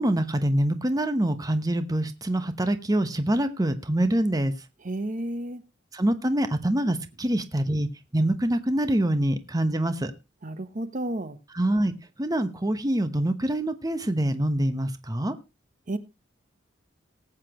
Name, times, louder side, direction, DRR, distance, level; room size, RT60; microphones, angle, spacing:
voice 1, 0.0-4.5 5.9-10.1 11.5-11.9 12.2-15.3, right 1 dB, 20° right, 1.0 m, -25 dB
voice 2, 4.8-5.6 10.4-11.4 15.9-16.0, right 1 dB, 45° right, 1.0 m, -31 dB
19.0 x 8.3 x 3.0 m
head